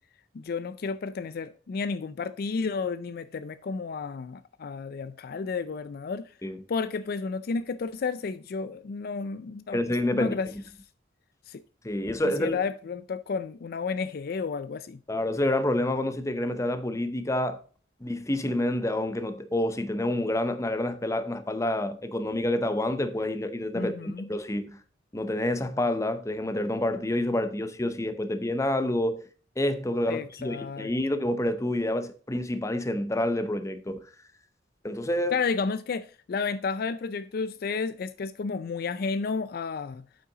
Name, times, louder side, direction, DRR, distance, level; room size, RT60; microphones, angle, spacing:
voice 1, 0.3-6.3 6.7-9.8 10.1-10.5 11.5-11.6 12.2-15.0 23.7-24.3 30.1-30.9 35.3-40.1, left 4 dB, 55° left, 0.4 m, -32 dB
voice 2, 9.7-10.3 11.8-12.6 15.1-17.6 18.0-24.8 25.1-29.2 29.6-34.0 34.8-35.4, left 1 dB, 15° left, 0.7 m, -28 dB
8.5 x 5.7 x 3.9 m
head